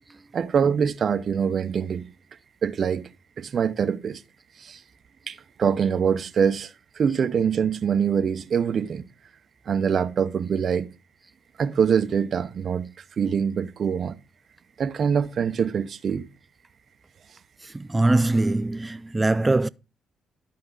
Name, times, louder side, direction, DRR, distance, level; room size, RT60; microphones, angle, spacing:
voice 1, 0.3-2.1 2.6-3.1 3.4-4.2 4.6-4.8 5.3-6.7 7.0-9.0 9.7-10.9 11.6-14.2 14.8-16.3, right 7 dB, 55° right, 0.8 m, -24 dB
voice 2, 17.7-19.7, right 2 dB, 20° right, 0.5 m, -22 dB
12.0 x 4.7 x 3.9 m
supercardioid pair, 60°, 0 cm